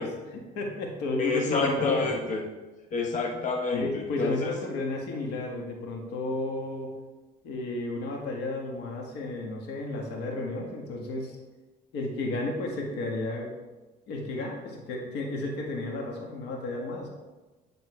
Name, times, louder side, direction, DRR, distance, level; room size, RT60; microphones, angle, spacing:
voice 1, 0.0-2.1 3.7-6.9 7.4-11.4 11.9-13.5 14.1-17.1, left 2 dB, 85° left, 1 dB, 1.6 m, -32 dB
voice 2, 1.2-2.4 2.9-4.5, left 3 dB, 45° left, 1 dB, 1.2 m, -28 dB
9.8 x 3.8 x 4.8 m, 1.2 s
cardioid pair, 110°, 17 cm